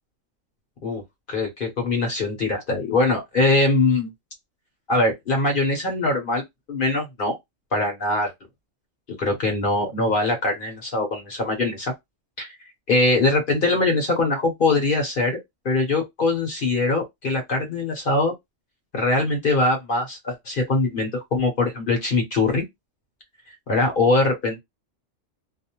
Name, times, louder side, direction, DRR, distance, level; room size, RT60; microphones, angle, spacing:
voice 1, 1.3-4.1 4.9-6.4 6.7-7.4 7.7-8.3 9.2-11.9 12.4-12.5 12.9-15.4 15.6-18.3 18.9-22.6 23.7-24.6, left 2 dB, 50° left, 0.8 m, -22 dB
2.4 x 2.0 x 2.8 m
omnidirectional pair, 1.3 m